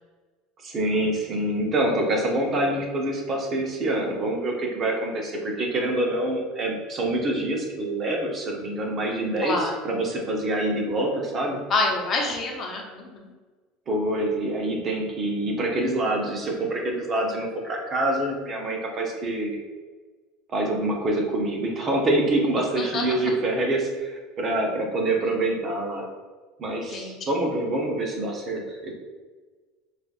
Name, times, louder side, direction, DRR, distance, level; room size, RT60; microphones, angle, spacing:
voice 1, 0.6-11.6 13.9-19.6 20.5-26.1 26.6-28.9, right 1 dB, 40° right, 0 dB, 0.9 m, -26 dB
voice 2, 9.4-9.8 11.7-13.3 22.8-23.3 26.9-27.2, left 3 dB, 40° left, 0 dB, 0.8 m, -27 dB
4.3 x 2.5 x 2.5 m, 1.4 s
hypercardioid pair, 90°, 0 cm